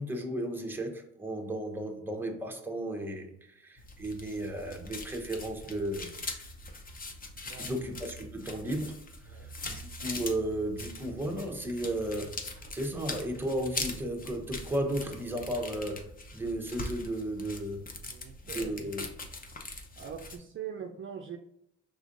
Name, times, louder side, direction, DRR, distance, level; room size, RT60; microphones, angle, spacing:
voice 1, 0.0-6.1 7.6-9.0 9.2-17.8 18.5-19.1, right 1 dB, 5° right, 0.8 m, -34 dB
sound 1, 3.8-20.4, left 2 dB, 30° left, 0.7 m, -42 dB
voice 2, 7.4-7.7 9.2-9.5 18.1-18.7 20.0-21.4, right 8 dB, 45° right, 0.4 m, -42 dB
4.9 x 3.6 x 2.6 m
cardioid pair, 90°, 30 cm